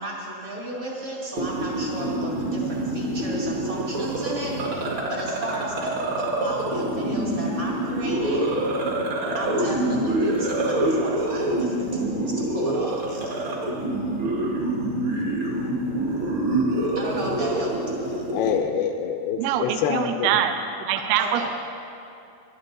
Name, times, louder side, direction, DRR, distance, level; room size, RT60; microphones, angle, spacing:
voice 1, 0.0-5.9 6.1-8.5 9.3-13.4 16.9-18.2 21.2-21.5, right 2 dB, 30° right, -4 dB, 0.9 m, -34 dB
sound 1, 1.4-18.6, right 1 dB, 45° right, 1.8 m, -26 dB
voice 2, 18.3-20.4, left 7 dB, 85° left, 4 dB, 2.6 m, -26 dB
voice 3, 19.4-20.5 20.9-21.5, right 10 dB, 80° right, 6 dB, 2.1 m, -24 dB
19.0 x 12.0 x 4.0 m, 2.6 s
omnidirectional pair, 4.7 m